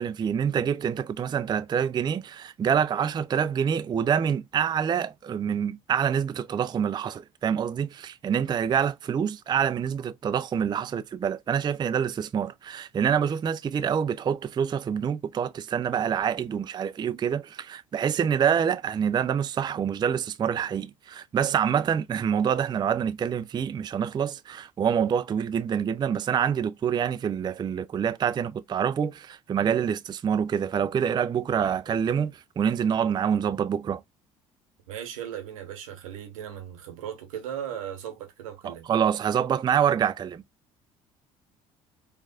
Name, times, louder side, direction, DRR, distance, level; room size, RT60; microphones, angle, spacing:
voice 1, 0.0-34.0 38.6-40.4, right 8 dB, 25° right, 0.3 m, -26 dB
voice 2, 34.9-38.9, right 10 dB, 85° right, 0.9 m, -37 dB
4.4 x 2.4 x 2.5 m
hypercardioid pair, 60°, 17 cm